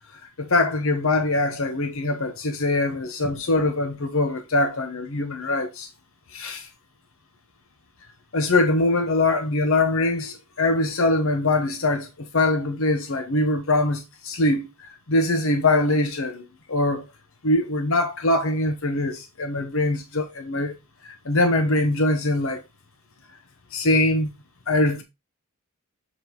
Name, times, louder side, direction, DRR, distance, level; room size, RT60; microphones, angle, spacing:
voice 1, 0.4-5.9 6.3-6.7 8.3-14.7 15.1-17.1 17.4-20.7 21.0-22.6 23.7-24.3 24.7-25.0, left 2 dB, 65° left, 1.0 m, -23 dB
7.0 x 4.0 x 3.7 m
head